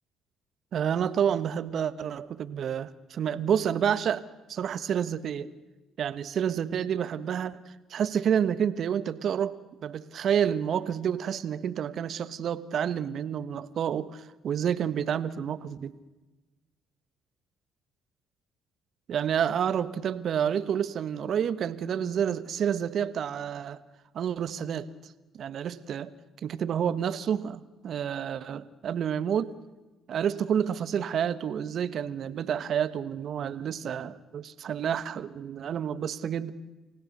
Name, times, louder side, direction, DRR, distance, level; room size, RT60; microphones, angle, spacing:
voice 1, 0.7-5.5 6.0-15.9 19.1-23.8 24.1-26.1 26.4-29.5 30.1-36.5, right 8 dB, 60° right, 14 dB, 1.2 m, -29 dB
29.5 x 17.0 x 6.7 m, 1.1 s
supercardioid pair, 60°, 0 cm